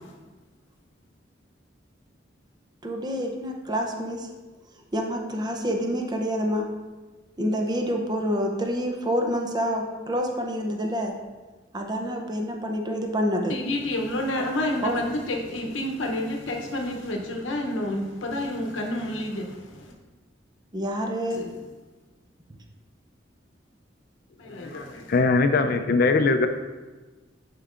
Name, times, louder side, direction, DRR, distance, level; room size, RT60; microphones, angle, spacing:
voice 1, 2.8-4.3 4.9-6.7 7.4-11.1 11.7-13.5 14.8-14.9 20.7-21.4, equal, 20° right, 2 dB, 0.6 m, -27 dB
voice 2, 13.5-19.9 21.3-21.5 24.4-25.1, left 1 dB, 80° left, 1 dB, 0.8 m, -29 dB
voice 3, 25.1-26.5, left 3 dB, 50° left, 9 dB, 0.4 m, -20 dB
10.0 x 4.5 x 2.5 m, 1.3 s
head